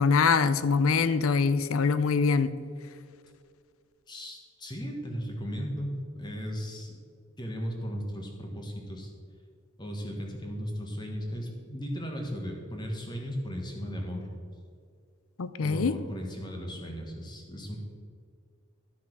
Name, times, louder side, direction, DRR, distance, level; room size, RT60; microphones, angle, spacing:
voice 1, 0.0-2.5 15.4-16.0, left 5 dB, 75° left, 14 dB, 0.5 m, -24 dB
voice 2, 4.1-7.0 7.4-9.1 9.8-14.3 15.6-17.8, equal, 20° left, 1 dB, 1.4 m, -36 dB
12.5 x 5.9 x 6.1 m, 2.2 s
head